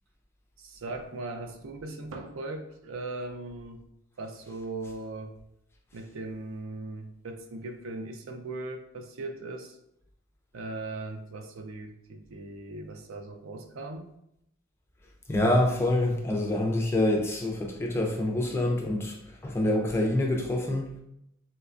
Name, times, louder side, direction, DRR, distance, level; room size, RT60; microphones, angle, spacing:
voice 1, 0.6-3.8 4.2-5.4 5.9-9.8 10.5-14.1, right 2 dB, 75° right, 5 dB, 0.4 m, -39 dB
voice 2, 15.3-21.0, left 1 dB, 10° left, 0 dB, 0.3 m, -26 dB
4.0 x 2.2 x 2.4 m, 0.78 s
head